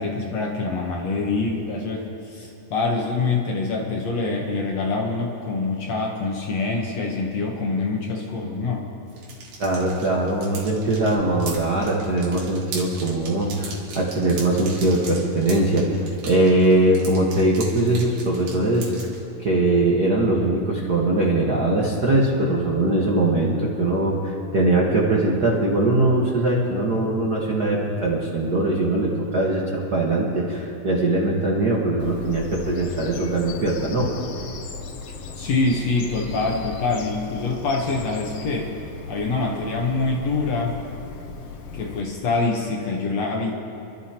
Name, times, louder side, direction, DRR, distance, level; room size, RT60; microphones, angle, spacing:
voice 1, 0.0-8.9 35.4-38.7 39.1-40.7 41.7-43.5, left 3 dB, 60° left, 0 dB, 1.9 m, -25 dB
sound 1, 9.1-19.2, right 3 dB, 85° right, 3.8 m, -38 dB
voice 2, 9.6-18.9 19.4-34.1, right 2 dB, 65° right, -3 dB, 0.9 m, -21 dB
Bird vocalization bird call bird song, 32.0-42.0, left 5 dB, 85° left, 1.3 m, -37 dB
27.5 x 12.5 x 2.9 m, 2.7 s
omnidirectional pair, 4.0 m